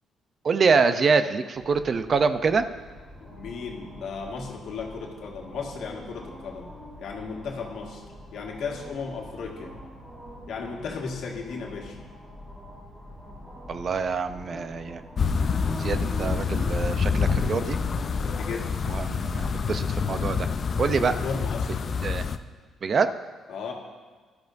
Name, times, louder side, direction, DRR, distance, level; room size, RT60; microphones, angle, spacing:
voice 1, 0.4-2.6 13.7-15.0 15.8-17.8 18.9-20.5 20.8-21.1 22.0-22.3 22.8-23.1, right 5 dB, 45° right, 10 dB, 0.6 m, -25 dB
sound 1, 1.6-21.1, equal, 25° right, 3.8 m, -44 dB
voice 2, 3.2-6.7 7.0-8.0 8.3-9.7 10.5-12.0 18.2-18.8 20.9-21.7 23.5-23.7, left 5 dB, 75° left, 0 dB, 1.7 m, -35 dB
sound 2, 15.2-22.4, left 5 dB, 45° left, 0.5 m, -27 dB
15.5 x 12.0 x 2.6 m, 1.4 s
cardioid pair, 90°, 0 cm